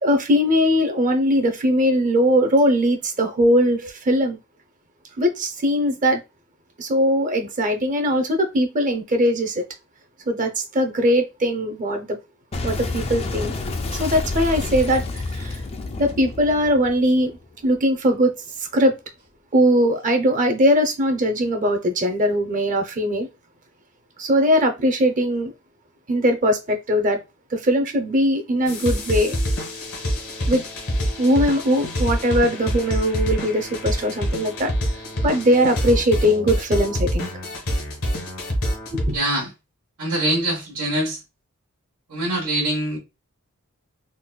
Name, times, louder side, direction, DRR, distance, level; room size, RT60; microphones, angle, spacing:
voice 1, 0.0-4.4 5.2-6.2 6.8-9.6 10.3-12.2 12.6-13.5 13.9-15.6 16.0-17.3 17.6-18.3 18.6-18.9 19.5-23.3 24.2-25.5 26.1-27.2 27.5-29.3 30.5-30.6 31.2-34.7 35.2-37.3 38.9-39.2, equal, 35° right, 0.6 m, -20 dB
Boom, 12.5-17.7, left 2 dB, 25° left, 0.3 m, -29 dB
sound 1, 28.7-39.1, equal, 85° left, 1.2 m, -26 dB
voice 2, 39.1-39.5 40.0-41.2 42.1-43.0, right 1 dB, 75° right, 1.1 m, -24 dB
3.8 x 2.2 x 2.2 m
head